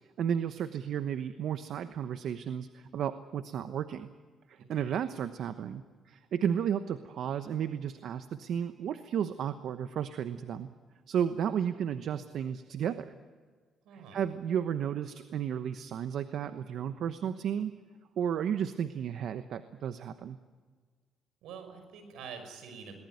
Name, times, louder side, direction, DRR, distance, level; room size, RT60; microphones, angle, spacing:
voice 1, 0.2-4.1 4.5-10.7 11.1-13.1 13.9-17.8 18.2-20.4, right 8 dB, 70° right, 10 dB, 1.0 m, -33 dB
voice 2, 4.6-5.0 13.8-14.2 21.4-23.0, right 6 dB, 90° right, 7 dB, 5.9 m, -46 dB
22.0 x 19.5 x 9.4 m, 1.5 s
cardioid pair, 90°, 0 cm